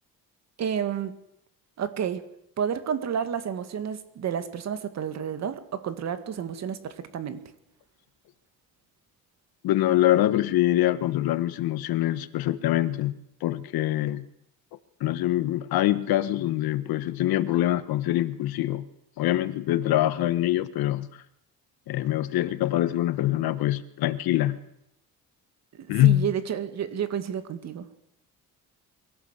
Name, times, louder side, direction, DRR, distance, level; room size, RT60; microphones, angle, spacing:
voice 1, 0.6-1.1 1.8-2.2 2.6-7.4 25.7-27.9, right 8 dB, 45° right, 10 dB, 2.1 m, -30 dB
voice 2, 9.6-13.1 13.4-14.3 15.0-18.9 19.2-21.1 21.9-24.6 25.9-26.3, left 14 dB, 85° left, 13 dB, 1.5 m, -24 dB
24.0 x 18.0 x 8.3 m, 0.78 s
cardioid pair, 175°, 36 cm